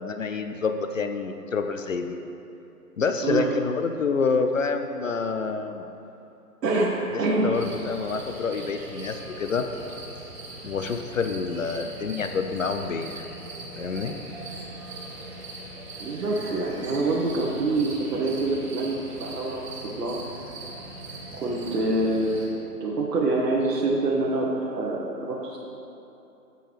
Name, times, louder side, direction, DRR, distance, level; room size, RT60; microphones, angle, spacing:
voice 1, 0.0-2.2 3.0-5.9 7.4-9.7 10.6-13.2 13.8-14.1, left 5 dB, 55° left, 7 dB, 0.5 m, -27 dB
voice 2, 3.2-3.5 6.6-6.9 7.2-7.6 16.0-19.7 20.0-20.2 21.3-22.5 22.8-25.6, right 2 dB, 85° right, -3 dB, 1.3 m, -26 dB
sound 1, 7.5-22.5, right 2 dB, 40° right, 1.8 m, -40 dB
13.5 x 4.6 x 3.3 m, 2.8 s
hypercardioid pair, 175°, 47 cm